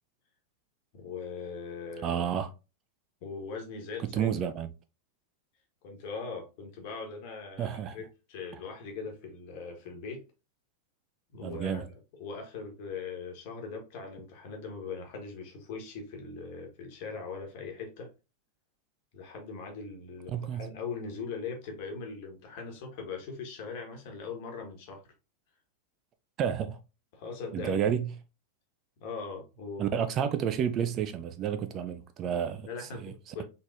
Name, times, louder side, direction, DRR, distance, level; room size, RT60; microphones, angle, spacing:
voice 1, 0.9-2.2 3.2-4.3 5.8-10.2 11.3-18.1 19.1-25.0 27.1-27.8 29.0-30.0 32.7-33.4, left 5 dB, 45° left, 1.3 m, -40 dB
voice 2, 2.0-2.5 4.0-4.7 7.6-8.0 11.4-11.8 20.3-20.7 26.4-26.8 27.5-28.1 29.8-32.7 33.0-33.1, right 8 dB, 30° right, 0.4 m, -30 dB
3.9 x 3.5 x 2.5 m
figure-of-eight pair, 90°, 0 cm